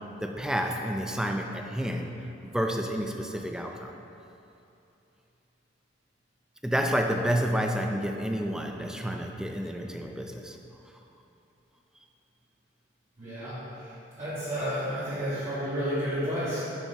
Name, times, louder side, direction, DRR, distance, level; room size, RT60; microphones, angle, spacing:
voice 1, 0.0-3.9 6.6-10.6, equal, 5° right, 3 dB, 0.5 m, -30 dB
voice 2, 13.2-16.6, equal, 40° right, -13 dB, 2.0 m, -31 dB
7.1 x 6.0 x 5.5 m, 2.8 s
head